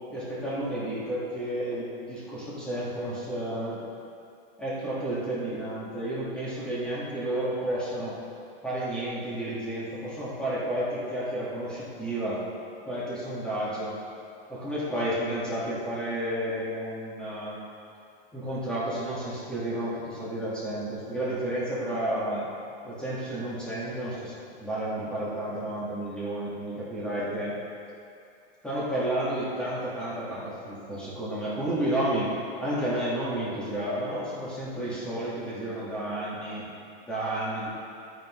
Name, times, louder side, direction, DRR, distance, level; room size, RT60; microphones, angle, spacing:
voice 1, 0.1-3.8 4.6-8.1 8.6-12.4 12.8-14.0 14.5-17.6 18.3-22.5 22.8-27.5 28.6-32.3 32.6-36.6 37.1-37.7, right 1 dB, 5° left, -10 dB, 1.6 m, -31 dB
12.0 x 9.3 x 3.1 m, 2.5 s
supercardioid pair, 180°, 29 cm